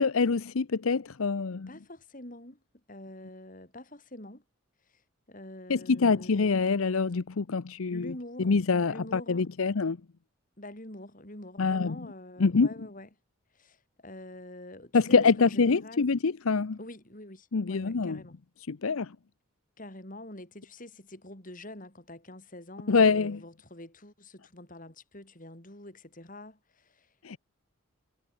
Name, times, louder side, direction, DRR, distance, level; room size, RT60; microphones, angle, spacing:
voice 1, 0.0-1.7 5.7-8.1 8.4-10.0 11.6-11.9 12.4-12.7 14.9-16.8 17.5-18.2 18.7-19.1 22.9-23.4 27.2-27.4, left 4 dB, 75° left, 0.7 m, -25 dB
voice 2, 1.7-2.6 2.9-4.4 4.9-5.0 5.3-6.7 7.9-9.5 10.6-13.1 13.5-16.1 16.8-18.4 19.8-27.1, left 1 dB, 35° left, 4.5 m, -46 dB
head